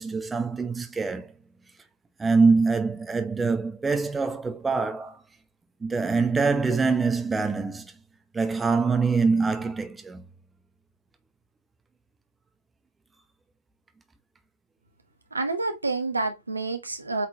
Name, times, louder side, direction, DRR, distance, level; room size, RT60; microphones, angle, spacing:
voice 1, 0.0-1.3 2.2-5.2 5.8-7.9 8.3-10.3, right 4 dB, 10° right, 1.1 m, -24 dB
voice 2, 15.3-17.3, right 3 dB, 80° right, 1.4 m, -28 dB
8.2 x 4.4 x 2.9 m
figure-of-eight pair, 90°, 0 cm